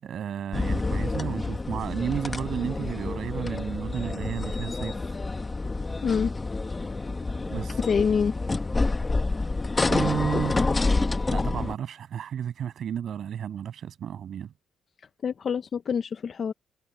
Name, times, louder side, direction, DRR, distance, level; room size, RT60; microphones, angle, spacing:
voice 1, 0.0-5.2 7.5-7.8 9.8-10.9 11.3-14.5, right 9 dB, 50° right, 6.8 m, -32 dB
sound 1, 0.5-11.7, left 3 dB, 15° left, 1.3 m, -28 dB
voice 2, 7.8-8.3 15.2-16.5, left 6 dB, 35° left, 0.6 m, -25 dB
cardioid pair, 150°, 0 cm